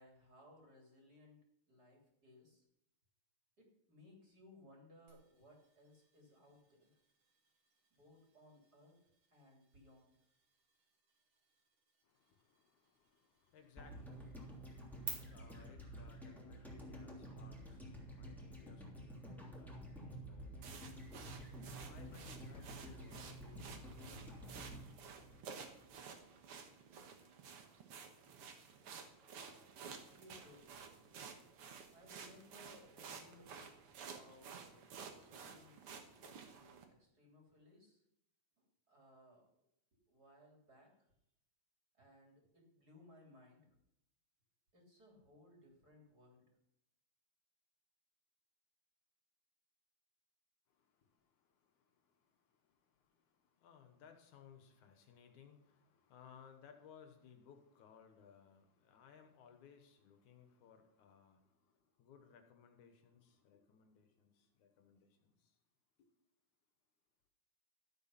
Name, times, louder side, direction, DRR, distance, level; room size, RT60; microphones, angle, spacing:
voice 1, 0.0-1.4 1.7-2.6 3.6-7.0 7.9-8.9 9.3-10.1 30.2-30.8 31.9-33.7 34.0-35.7 36.2-38.0 38.6-39.5 40.1-41.1 41.9-43.6 44.7-46.5, left 1 dB, 30° right, -1 dB, 3.5 m, -63 dB
sound 1, 5.1-15.1, right 8 dB, 75° right, 4.4 m, -57 dB
voice 2, 12.0-25.8 50.7-65.5 66.0-66.1, left 7 dB, 75° left, 6 dB, 2.6 m, -64 dB
sound 2, 13.8-26.0 26.2-26.3, equal, ahead, 2.6 m, -51 dB
sound 3, 20.6-36.8, right 6 dB, 55° right, 1.9 m, -53 dB
14.0 x 8.2 x 5.8 m, 0.78 s
omnidirectional pair, 3.6 m